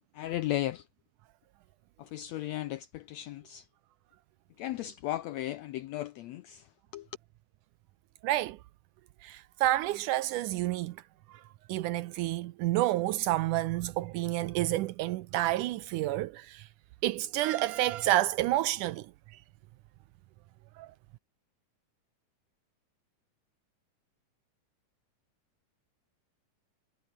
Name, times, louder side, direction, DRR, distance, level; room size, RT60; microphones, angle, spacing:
voice 1, 0.1-0.9 2.0-3.7 4.6-7.1, left 14 dB, 85° left, 1.5 m, -36 dB
voice 2, 8.2-8.6 9.2-11.0 11.3-11.4 11.7-16.7 17.0-19.1 20.8-20.9, right 15 dB, 75° right, 2.1 m, -29 dB
omnidirectional pair, 3.8 m